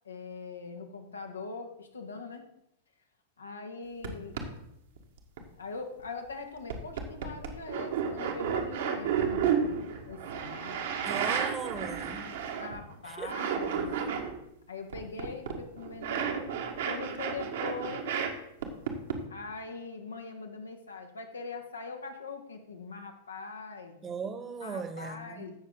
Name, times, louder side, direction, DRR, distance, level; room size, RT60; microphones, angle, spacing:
voice 1, 0.0-2.4 3.4-4.3 5.6-9.8 10.0-11.4 11.7-11.9 12.6-13.9 14.7-16.3 16.9-18.1 19.3-24.0 24.6-25.5, left 4 dB, 75° left, 4 dB, 1.6 m, -42 dB
sound 1, 4.0-4.1 4.3-4.4 5.0-5.4 6.0-6.1 6.7-12.9 13.2-14.3 14.9-18.3 18.6-19.2, right 7 dB, 65° right, 1.7 m, -32 dB
voice 2, 11.0-12.4 13.0-13.3 24.0-25.5, right 5 dB, 25° right, 9 dB, 1.3 m, -38 dB
16.0 x 6.3 x 3.8 m, 0.83 s
figure-of-eight pair, 95°, 0 cm